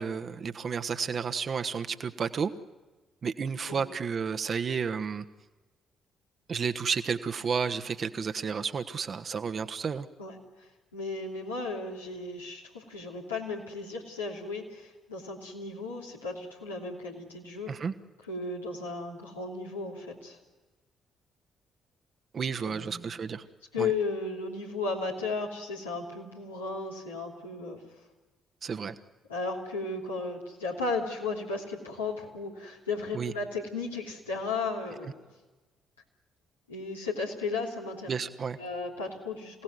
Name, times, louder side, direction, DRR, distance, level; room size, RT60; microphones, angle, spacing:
voice 1, 0.0-2.5 3.2-5.2 6.5-10.1 17.7-17.9 22.3-23.4 23.8-23.9 28.6-28.9 33.1-33.3 38.1-38.6, right 6 dB, 45° right, 9 dB, 1.3 m, -31 dB
voice 2, 10.9-17.7 18.3-20.4 22.6-23.1 23.7-27.8 29.3-35.1 36.7-38.1 38.6-39.6, left 3 dB, 85° left, -3 dB, 3.0 m, -35 dB
27.0 x 17.5 x 9.5 m, 1.2 s
figure-of-eight pair, 45°, 0 cm